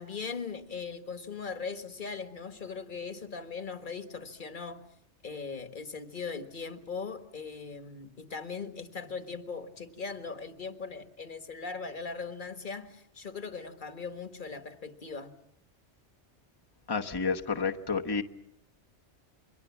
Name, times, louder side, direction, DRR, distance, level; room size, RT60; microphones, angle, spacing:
voice 1, 0.0-4.8 5.2-15.3, left 5 dB, 45° left, 9 dB, 1.7 m, -39 dB
voice 2, 16.9-18.2, left 5 dB, 20° left, 4 dB, 1.1 m, -30 dB
28.0 x 23.5 x 7.2 m, 0.76 s
omnidirectional pair, 1.2 m